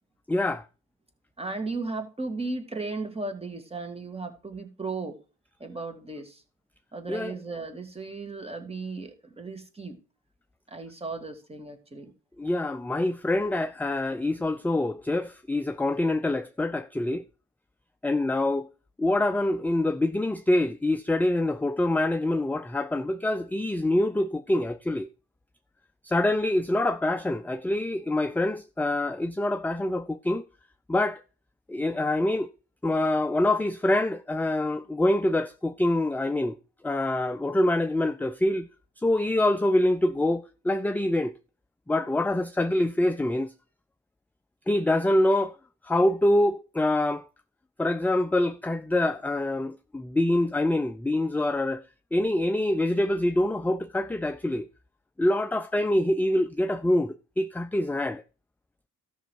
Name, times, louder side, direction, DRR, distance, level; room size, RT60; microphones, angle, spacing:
voice 1, 0.3-0.6 7.1-7.3 12.4-17.2 18.0-18.7 19.0-25.1 26.0-30.4 30.9-31.2 31.7-32.5 32.8-36.5 36.8-38.7 39.0-41.3 41.9-43.5 44.7-45.5 45.8-47.3 47.8-51.8 52.1-54.7 55.2-58.2, left 1 dB, 5° left, 0.4 m, -25 dB
voice 2, 1.4-5.2 5.6-6.4 6.9-10.0 10.7-12.1, right 3 dB, 20° right, 2.2 m, -35 dB
13.0 x 6.2 x 4.6 m
cardioid pair, 90°, 30 cm